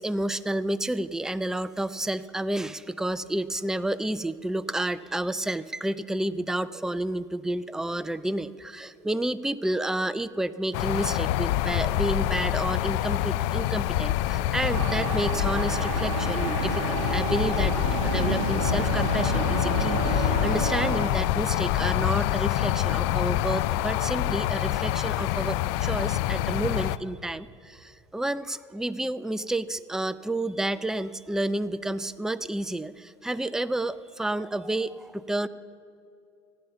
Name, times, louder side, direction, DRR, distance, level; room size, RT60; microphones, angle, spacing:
voice 1, 0.0-35.5, right 1 dB, 5° right, 14 dB, 0.5 m, -30 dB
sound 1, 10.7-27.0, left 14 dB, 65° left, 0.4 m, -26 dB
sound 2, 14.7-21.1, right 7 dB, 85° right, 0.8 m, -31 dB
15.0 x 9.3 x 6.9 m, 2.5 s
hypercardioid pair, 70°, 16 cm